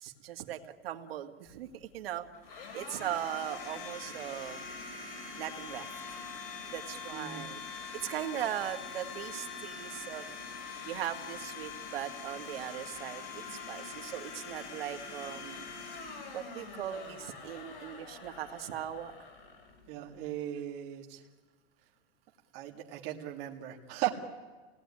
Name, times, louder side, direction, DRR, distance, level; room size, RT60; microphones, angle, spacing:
voice 1, 0.0-2.3 2.7-4.6 5.4-5.9 6.7-7.6 8.0-10.3 10.8-15.7 16.3-19.1, right 11 dB, 80° right, 6 dB, 2.1 m, -39 dB
Domestic sounds home sounds, 1.5-20.3, left 5 dB, 65° left, 5.7 m, -44 dB
voice 2, 7.1-7.4 19.9-21.2 22.5-24.1, right 14 dB, 35° right, 0 dB, 2.3 m, -37 dB
27.5 x 18.5 x 9.9 m, 1.3 s
supercardioid pair, 175°, 29 cm